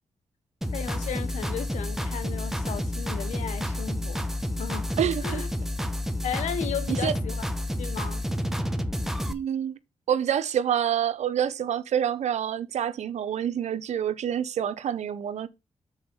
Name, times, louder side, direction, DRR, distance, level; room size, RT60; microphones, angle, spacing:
sound 1, 0.6-9.3, left 1 dB, 5° right, 1.0 m, -30 dB
voice 1, 0.7-4.3 4.6-4.9 5.2-5.5 6.2-7.5 7.8-8.2, left 8 dB, 90° left, 1.0 m, -35 dB
voice 2, 5.0-5.4 6.9-7.1 9.3-9.8 10.1-15.5, right 9 dB, 80° right, 0.7 m, -27 dB
7.3 x 4.4 x 5.4 m
cardioid pair, 55°, 12 cm